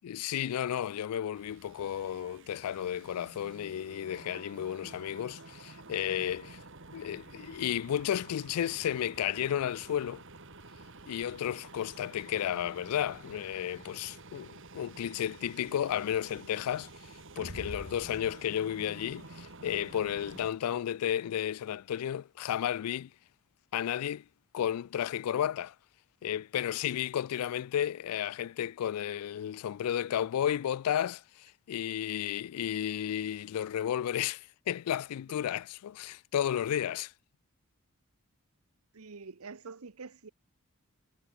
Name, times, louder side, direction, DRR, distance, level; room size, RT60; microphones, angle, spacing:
voice 1, 0.0-6.6 6.9-10.2 11.1-16.9 17.4-23.1 23.7-24.2 24.5-25.7 26.2-37.1, left 10 dB, 90° left, 0.3 m, -33 dB
sound 1, 1.3-20.5, right 2 dB, 60° right, 3.4 m, -49 dB
voice 2, 38.9-40.3, right 4 dB, 75° right, 0.9 m, -46 dB
head